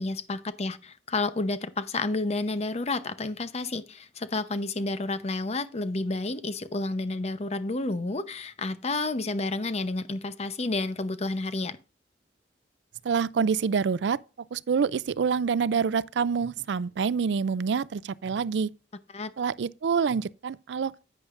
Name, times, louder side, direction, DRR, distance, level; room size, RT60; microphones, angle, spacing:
voice 1, 0.0-11.8 19.1-19.3, left 2 dB, 40° left, 0.8 m, -30 dB
voice 2, 13.0-14.2 14.5-18.7 19.4-21.0, right 6 dB, 80° right, 0.4 m, -26 dB
10.5 x 8.5 x 2.5 m
head